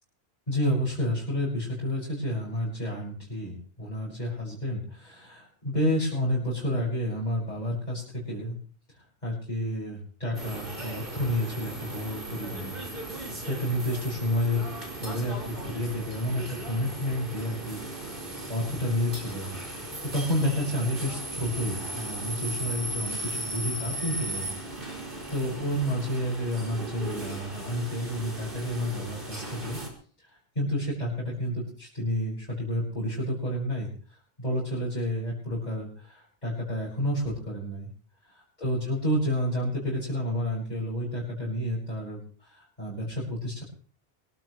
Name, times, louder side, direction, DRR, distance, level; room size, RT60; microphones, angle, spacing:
voice 1, 0.5-8.6 8.9-12.7 13.4-14.6 15.0-18.2 18.5-19.5 20.1-24.5 25.3-29.8 30.2-37.9 38.2-43.6, equal, 40° left, -8 dB, 6.4 m, -30 dB
sound 1, 10.3-29.9, right 1 dB, 55° right, 5.0 m, -37 dB
25.0 x 16.0 x 3.2 m, 0.42 s
omnidirectional pair, 1.1 m